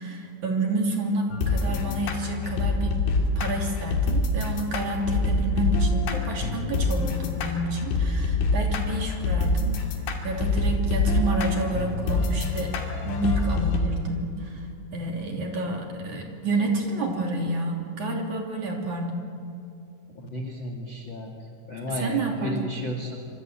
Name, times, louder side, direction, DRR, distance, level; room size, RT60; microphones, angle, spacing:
voice 1, 0.0-3.0 3.4-9.8 10.2-12.7 13.0-14.7 14.9-19.3 21.9-22.7, right 2 dB, 45° right, 1 dB, 3.8 m, -29 dB
sound 1, 1.3-13.8, left 3 dB, 85° left, 5.1 m, -26 dB
voice 2, 20.2-21.3 21.7-23.2, left 1 dB, 40° left, 3 dB, 2.0 m, -33 dB
26.0 x 25.5 x 8.9 m, 2.6 s
omnidirectional pair, 5.3 m